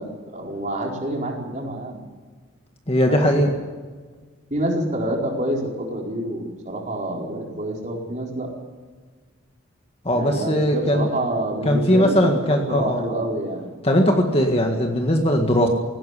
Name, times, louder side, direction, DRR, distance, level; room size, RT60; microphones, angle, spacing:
voice 1, 0.0-2.0 3.0-3.2 4.5-8.5 10.1-13.6, right 1 dB, 35° right, -1 dB, 4.8 m, -27 dB
voice 2, 2.9-3.5 10.1-11.1 11.7-13.0 13.8-15.7, equal, 30° left, 2 dB, 1.8 m, -19 dB
18.5 x 17.0 x 9.9 m, 1.5 s
head